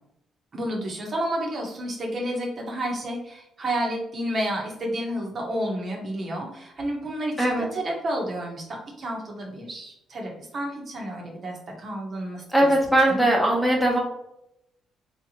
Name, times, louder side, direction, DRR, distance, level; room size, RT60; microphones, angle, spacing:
voice 1, 0.5-12.7 13.1-13.3, right 1 dB, 50° right, 0 dB, 0.9 m, -31 dB
voice 2, 12.5-14.0, right 1 dB, ahead, -3 dB, 1.0 m, -20 dB
3.3 x 2.7 x 2.9 m, 0.80 s
cardioid pair, 90°, 0 cm